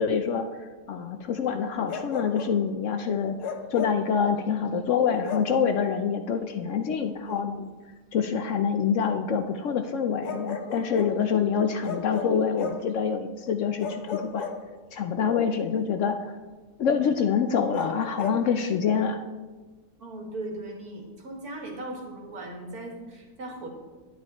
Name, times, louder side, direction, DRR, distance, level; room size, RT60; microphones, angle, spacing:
voice 1, 0.0-3.4 3.7-7.7 8.1-14.5 14.9-16.3 16.8-19.2, left 6 dB, 65° left, 8 dB, 0.8 m, -26 dB
Bark, 1.9-2.6 3.4-4.1 5.2-5.6 7.3-7.4 10.2-11.2 11.8-12.9 13.8-15.1 17.7-18.5, left 5 dB, 85° left, 1.4 m, -36 dB
voice 2, 20.0-23.7, right 1 dB, 70° right, 1 dB, 2.2 m, -38 dB
10.0 x 9.4 x 4.2 m, 1.3 s
omnidirectional pair, 1.6 m